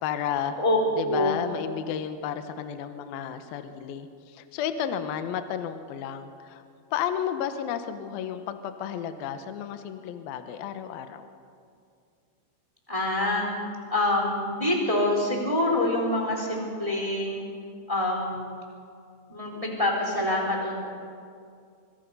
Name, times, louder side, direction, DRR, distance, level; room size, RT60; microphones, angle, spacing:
voice 1, 0.0-0.6 1.0-6.6 6.9-11.3, left 9 dB, 75° left, 8 dB, 2.2 m, -32 dB
voice 2, 1.1-1.4 12.9-13.5 13.9-17.4 17.9-18.4 19.3-20.8, left 1 dB, 10° right, 1 dB, 2.6 m, -26 dB
25.0 x 24.5 x 5.5 m, 2.4 s
omnidirectional pair, 5.6 m